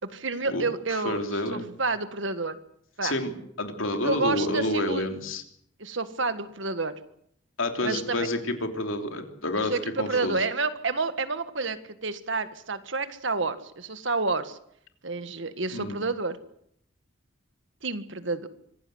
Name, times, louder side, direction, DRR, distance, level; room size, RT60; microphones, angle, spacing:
voice 1, 0.0-1.2 1.5-2.6 3.0-3.1 4.0-5.0 5.8-6.9 7.8-8.3 9.6-14.6 15.0-16.4 17.8-18.5, right 3 dB, 65° right, 11 dB, 1.7 m, -29 dB
voice 2, 0.9-1.7 3.0-3.3 3.6-5.4 7.6-10.4 15.7-16.0, left 1 dB, 75° left, 5 dB, 3.3 m, -29 dB
25.5 x 17.0 x 7.9 m, 0.70 s
head